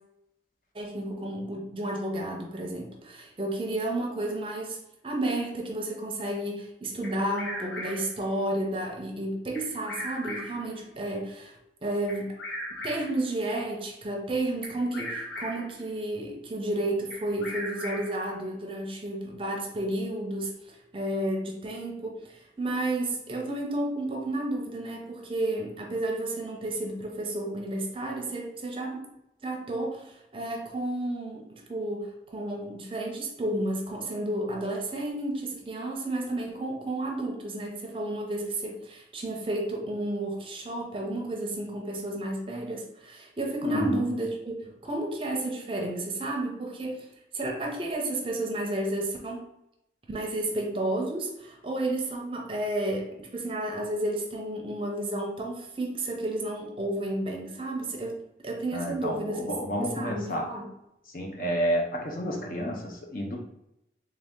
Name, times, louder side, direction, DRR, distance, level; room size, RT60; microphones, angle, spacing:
voice 1, 0.7-4.8 5.0-12.4 12.8-29.1 29.4-47.1 47.3-49.4 50.1-59.5 59.8-60.7, right 1 dB, 30° right, 1 dB, 0.6 m, -32 dB
Bird vocalization bird call bird song, 7.0-8.2 9.5-10.7 12.1-13.2 14.6-15.7 17.1-18.3, left 1 dB, 90° left, 1.3 m, -38 dB
voice 2, 43.6-44.1 58.7-60.5 61.1-63.4, equal, 50° left, 0 dB, 0.7 m, -30 dB
3.4 x 2.8 x 3.5 m, 0.84 s
head